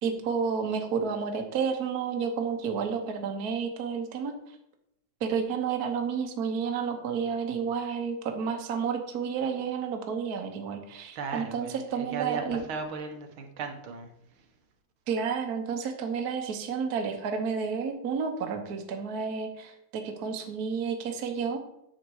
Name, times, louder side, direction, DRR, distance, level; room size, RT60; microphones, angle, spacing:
voice 1, 0.0-4.3 5.2-12.6 15.1-21.6, right 6 dB, 50° right, 5 dB, 1.5 m, -31 dB
voice 2, 11.1-14.5, right 5 dB, 75° right, 5 dB, 2.0 m, -37 dB
9.4 x 7.2 x 4.8 m, 0.79 s
omnidirectional pair, 2.3 m